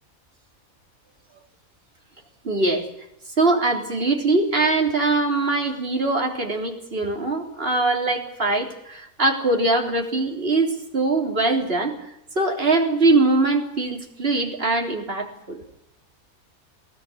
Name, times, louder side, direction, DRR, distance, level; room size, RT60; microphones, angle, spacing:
voice 1, 2.4-2.9 3.4-15.6, right 2 dB, 40° right, 3.9 m, -22 dB
22.0 x 18.0 x 9.8 m
omnidirectional pair, 1.5 m